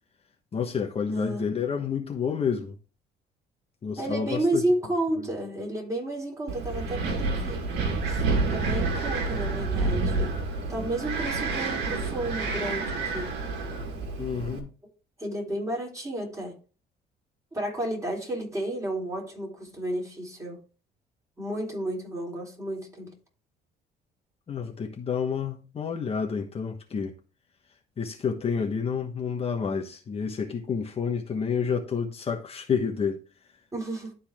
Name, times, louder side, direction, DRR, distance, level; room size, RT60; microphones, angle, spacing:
voice 1, 0.5-2.7 3.8-4.6 14.2-14.7 24.5-27.1 28.0-33.2, left 6 dB, 35° left, 1.3 m, -29 dB
voice 2, 1.1-1.5 4.0-7.6 8.1-8.2 8.5-10.4 10.7-13.3 15.2-16.6 17.5-20.6 21.4-23.2 33.7-34.1, right 1 dB, 20° right, 3.8 m, -31 dB
Wind, 6.5-14.6, right 3 dB, 75° right, 2.0 m, -29 dB
12.0 x 4.2 x 3.6 m
cardioid pair, 110°, 17 cm